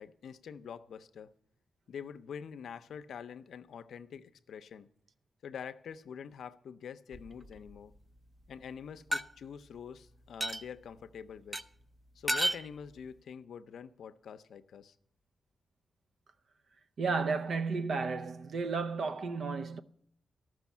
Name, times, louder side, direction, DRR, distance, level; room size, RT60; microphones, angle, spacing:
voice 1, 0.0-1.3 1.9-4.9 5.4-7.9 8.5-11.6 12.2-14.9, left 7 dB, 90° left, 0.5 m, -45 dB
sound 1, 7.1-7.8 9.1-9.2 10.4-10.6 11.5-11.6 12.3-12.6, right 1 dB, 15° right, 0.5 m, -32 dB
voice 2, 17.0-19.8, right 4 dB, 70° right, 0.6 m, -33 dB
13.0 x 6.2 x 8.2 m
cardioid pair, 100°, 0 cm